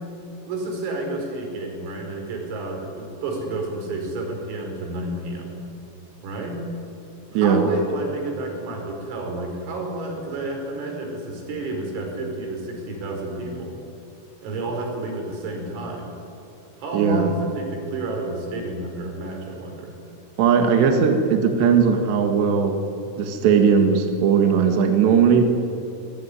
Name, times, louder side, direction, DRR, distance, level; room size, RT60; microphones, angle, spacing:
voice 1, 0.5-5.6 6.2-6.6 7.3-13.7 14.4-16.1 16.8-20.0, right 2 dB, 85° right, 2 dB, 7.8 m, -30 dB
voice 2, 7.3-7.7 16.9-17.3 20.4-22.8 23.2-25.4, right 6 dB, 65° right, 4 dB, 3.6 m, -18 dB
27.5 x 21.5 x 9.9 m, 2.7 s
omnidirectional pair, 5.9 m